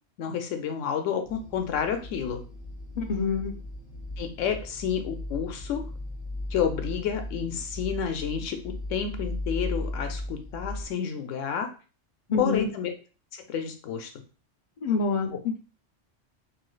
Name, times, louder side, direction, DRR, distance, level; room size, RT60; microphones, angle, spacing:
voice 1, 0.2-2.4 4.2-5.8 6.5-11.7 12.4-12.9 13.3-14.1, left 7 dB, 85° left, 6 dB, 0.9 m, -30 dB
sound 1, 1.3-10.9, left 1 dB, 35° right, 0.6 m, -37 dB
voice 2, 3.0-3.5 12.3-12.7 14.8-15.6, left 4 dB, 55° left, 4 dB, 0.4 m, -27 dB
3.1 x 3.0 x 2.2 m, 0.36 s
omnidirectional pair, 1.3 m